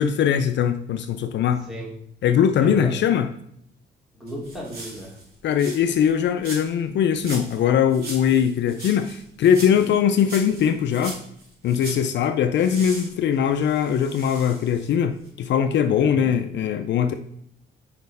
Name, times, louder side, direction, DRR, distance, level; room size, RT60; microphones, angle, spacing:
voice 1, 0.0-1.7 2.2-3.3 5.4-11.2 11.6-17.1, left 8 dB, 65° left, 9 dB, 0.5 m, -21 dB
voice 2, 2.6-3.0 4.1-5.2 16.0-16.3, right 1 dB, ahead, -4 dB, 2.6 m, -35 dB
sound 1, 4.3-6.1 6.4-6.8 7.1-7.6 7.9-12.1 12.6-15.0 15.2-15.3, right 2 dB, 50° right, 2.9 m, -39 dB
5.1 x 4.2 x 5.4 m, 0.69 s
cardioid pair, 90°, 20 cm